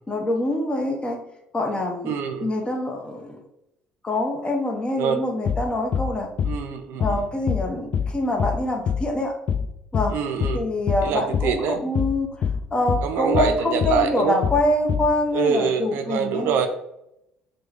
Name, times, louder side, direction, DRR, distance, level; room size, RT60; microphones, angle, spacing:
voice 1, 0.1-1.2 1.5-2.1 2.4-3.4 4.0-6.3 6.9-9.3 9.9-10.2 10.5-16.6, left 1 dB, 20° left, 3 dB, 0.9 m, -25 dB
voice 2, 2.1-2.5 5.0-5.2 6.5-7.2 10.1-10.6 11.0-11.8 13.0-14.4 15.3-16.7, right 7 dB, 55° right, 6 dB, 0.4 m, -25 dB
sound 1, 5.5-5.7 5.9-6.1 6.4-6.6 7.0-7.2 7.5-7.7 7.9-8.1 8.4-8.6 8.9-9.1 9.5-9.7 9.9-10.1 10.4-10.6 10.9-11.1 11.3-11.5 12.0-12.2 12.4-12.6 12.9-13.1 13.3-13.5 13.8-14.0 14.4-14.6 14.9-15.1, left 7 dB, 40° left, 0.3 m, -24 dB
5.9 x 2.2 x 3.1 m, 0.81 s
figure-of-eight pair, 55°, 5 cm